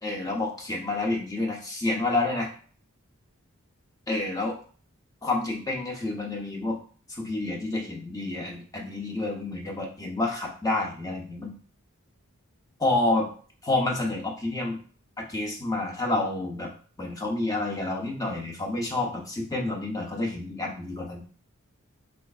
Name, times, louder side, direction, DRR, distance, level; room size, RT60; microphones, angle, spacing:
voice 1, 0.0-2.5 4.1-4.6 5.2-6.8 7.1-11.6 12.8-13.3 13.6-14.8 15.2-16.7 17.0-21.2, left 2 dB, 15° left, 0 dB, 0.6 m, -29 dB
3.3 x 3.1 x 2.3 m, 0.43 s
head